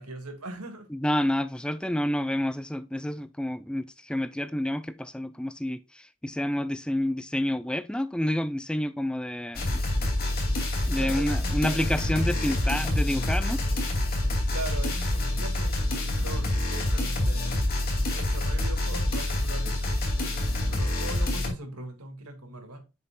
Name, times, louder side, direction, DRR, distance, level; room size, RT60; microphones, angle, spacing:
voice 1, 0.0-0.9 10.9-12.4 14.5-17.9 18.1-22.8, right 2 dB, 85° right, 2.0 m, -41 dB
voice 2, 0.9-9.8 10.9-13.6, left 1 dB, 5° left, 0.4 m, -29 dB
sound 1, 9.5-21.5, left 1 dB, 40° left, 2.4 m, -27 dB
7.5 x 5.8 x 2.3 m
head